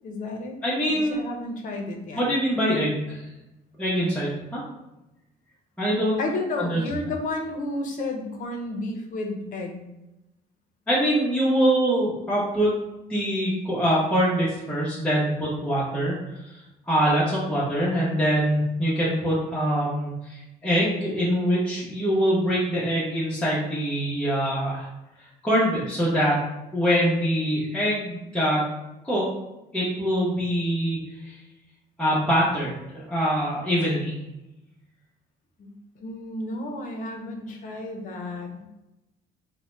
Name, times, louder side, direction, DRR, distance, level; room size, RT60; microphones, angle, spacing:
voice 1, 0.0-0.6 1.0-2.2 6.2-9.8 35.6-38.6, left 2 dB, 50° left, 2 dB, 0.6 m, -32 dB
voice 2, 0.6-1.2 2.1-3.3 3.8-4.6 5.8-6.2 6.6-6.8 10.9-12.7 13.1-24.9 25.2-26.4 26.7-28.7 29.0-29.3 29.7-31.4 32.0-34.1, equal, 5° left, -9 dB, 0.7 m, -24 dB
2.7 x 2.1 x 3.1 m, 0.95 s
cardioid pair, 110°, 17 cm